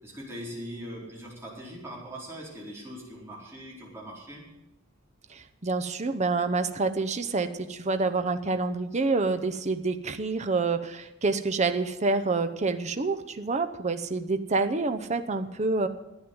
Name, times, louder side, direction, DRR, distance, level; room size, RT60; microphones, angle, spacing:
voice 1, 0.0-4.4, equal, 15° right, -4 dB, 4.4 m, -41 dB
voice 2, 5.3-15.9, right 3 dB, 35° right, 8 dB, 0.7 m, -27 dB
11.0 x 9.4 x 9.7 m, 0.92 s
head